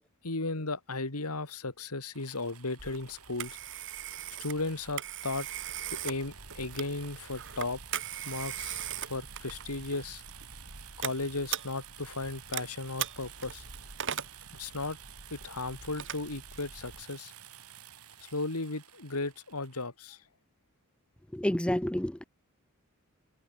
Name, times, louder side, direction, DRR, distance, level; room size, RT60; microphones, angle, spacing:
voice 1, 0.2-3.8 4.4-5.5 6.0-7.8 8.2-10.2 11.0-13.6 14.6-15.0 15.3-17.3 18.2-20.2, left 3 dB, 90° left, 2.8 m, -35 dB
sound 1, 2.1-19.9, right 9 dB, 85° right, 5.7 m, -51 dB
Telephone, 2.8-17.0, right 9 dB, 60° right, 4.1 m, -40 dB
voice 2, 21.3-22.2, equal, 5° left, 0.6 m, -29 dB
head